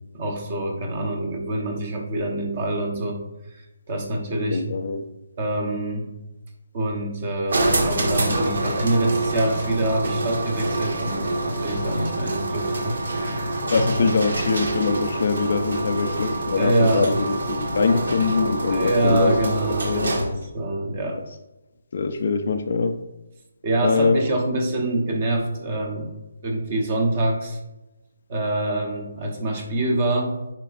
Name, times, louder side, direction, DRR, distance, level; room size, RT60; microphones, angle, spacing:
voice 1, 0.1-3.2 3.5-4.6 5.4-6.1 6.7-13.7 13.9-14.1 16.6-17.1 18.7-21.2 23.6-26.1 26.4-27.6 28.3-30.3, right 1 dB, 25° right, 2 dB, 1.0 m, -25 dB
voice 2, 4.5-5.0 13.7-19.5 19.8-20.2 21.9-23.0 23.8-24.3, left 4 dB, 40° left, 7 dB, 0.4 m, -23 dB
sound 1, 7.5-20.4, right 2 dB, 60° right, 1.4 m, -26 dB
8.9 x 5.1 x 2.5 m, 0.98 s
hypercardioid pair, 180°, 0 cm